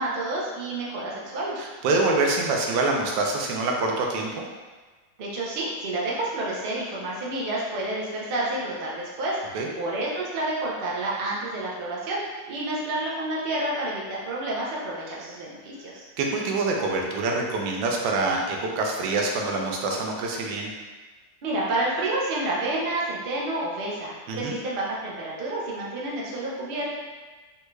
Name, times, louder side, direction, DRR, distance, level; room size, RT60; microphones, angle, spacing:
voice 1, 0.0-1.6 5.2-12.2 12.5-16.0 21.4-26.9, right 2 dB, 65° right, -5 dB, 0.5 m, -29 dB
voice 2, 1.6-4.5 9.5-9.7 16.2-20.7 24.3-24.5, right 3 dB, 90° right, 0 dB, 1.3 m, -25 dB
3.6 x 2.3 x 3.1 m, 1.3 s
omnidirectional pair, 1.9 m